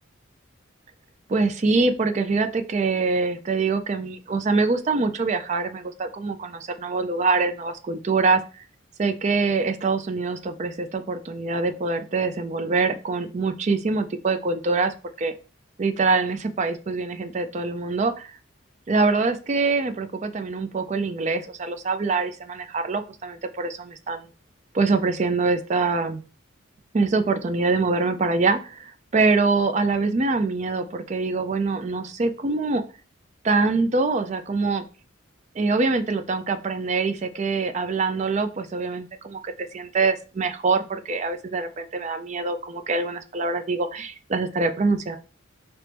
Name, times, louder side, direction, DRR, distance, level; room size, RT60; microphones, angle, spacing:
voice 1, 1.3-8.6 9.0-15.3 15.8-18.4 18.9-24.3 24.7-26.2 26.9-32.8 33.4-34.8 35.6-45.2, right 3 dB, 35° right, 9 dB, 0.4 m, -24 dB
4.4 x 3.0 x 3.3 m, 0.35 s
head